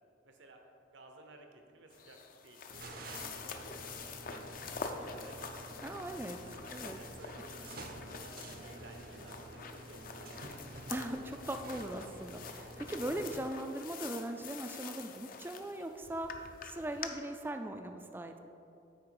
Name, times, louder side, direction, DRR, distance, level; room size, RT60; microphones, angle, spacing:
voice 1, 0.2-0.6 0.9-5.9 7.0-10.7, right 2 dB, 75° right, 3 dB, 0.9 m, -57 dB
sound 1, 1.9-17.1, left 5 dB, 45° left, 0.5 m, -46 dB
sound 2, 2.7-13.5, right 2 dB, 50° right, 0.6 m, -49 dB
voice 2, 5.8-6.4 6.7-7.0 10.9-18.4, right 1 dB, 10° right, 6 dB, 0.3 m, -40 dB
9.7 x 4.3 x 4.7 m, 2.9 s
head